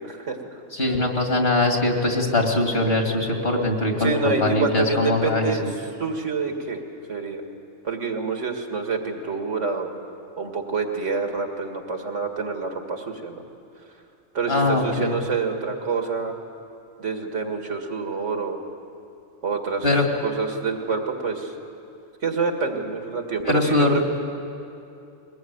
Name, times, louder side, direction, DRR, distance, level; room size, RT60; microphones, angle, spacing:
voice 1, 0.0-0.6 3.5-3.6 4.0-5.7 6.0-6.8 7.1-7.4 7.8-9.9 10.4-13.4 14.3-16.3 17.0-18.6 19.4-21.5 22.2-24.0, right 4 dB, 75° right, 3 dB, 2.5 m, -27 dB
voice 2, 0.7-5.7 14.5-15.2 19.8-20.1 23.4-24.0, left 2 dB, 50° left, 2 dB, 2.7 m, -22 dB
22.5 x 20.0 x 9.5 m, 2.7 s
omnidirectional pair, 1.3 m